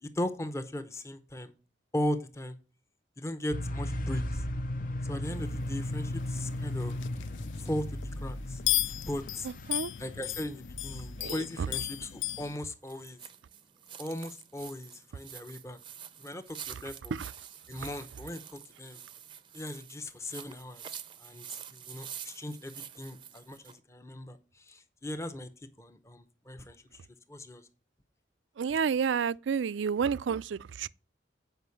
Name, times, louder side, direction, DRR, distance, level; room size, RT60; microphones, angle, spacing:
voice 1, 0.0-1.5 1.9-2.6 3.2-4.4 5.0-7.1 7.6-8.6 9.1-9.5 10.0-13.2 14.0-15.8 16.2-17.1 17.7-19.0 19.5-20.8 21.2-25.5 25.8-26.8 27.3-27.6, left 1 dB, 15° left, 0.7 m, -38 dB
sound 1, 3.5-11.3, left 1 dB, 45° left, 0.7 m, -36 dB
sound 2, 5.2-12.6, left 15 dB, 90° left, 0.4 m, -36 dB
voice 2, 9.4-9.9 11.2-11.7 17.1-17.3 17.8-17.9 28.6-30.9, right 6 dB, 80° right, 0.4 m, -30 dB
sound 3, 11.5-23.8, right 9 dB, 25° right, 0.6 m, -47 dB
7.9 x 5.2 x 7.0 m
head